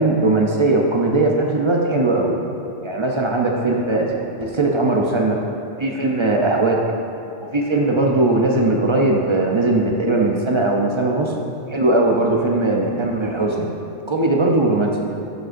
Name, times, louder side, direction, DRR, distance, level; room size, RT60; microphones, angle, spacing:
voice 1, 0.0-2.4 2.8-4.1 4.4-5.4 5.8-6.8 7.5-11.3 11.7-13.7 14.1-15.0, right 2 dB, 40° right, 0 dB, 0.4 m, -19 dB
10.0 x 6.2 x 2.5 m, 2.6 s
omnidirectional pair, 1.1 m